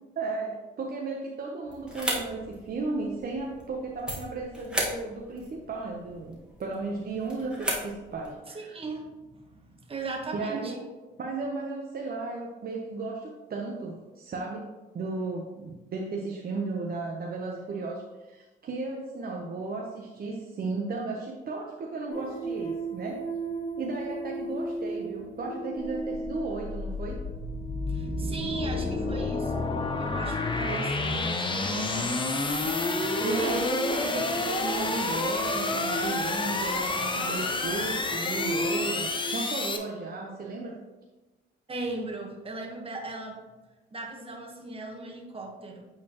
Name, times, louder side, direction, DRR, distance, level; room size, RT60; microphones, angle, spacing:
voice 1, 0.2-8.8 10.3-10.9 11.2-14.7 14.9-23.2 23.8-27.2 30.6-30.9 33.2-40.8, right 3 dB, 50° right, -1 dB, 0.9 m, -35 dB
sound 1, 1.6-8.4, equal, 5° right, 1.7 m, -37 dB
voice 2, 8.5-10.8 27.9-29.7 30.0-32.2 33.2-33.7 41.7-43.4 43.9-45.9, right 3 dB, 30° right, 1 dB, 1.4 m, -38 dB
sound 2, 22.1-37.2 37.9-39.2, right 1 dB, 40° left, 1.8 m, -36 dB
sound 3, 25.8-39.8, left 3 dB, 25° left, 0.8 m, -30 dB
8.5 x 4.3 x 3.0 m, 1.1 s
cardioid pair, 90°, 20 cm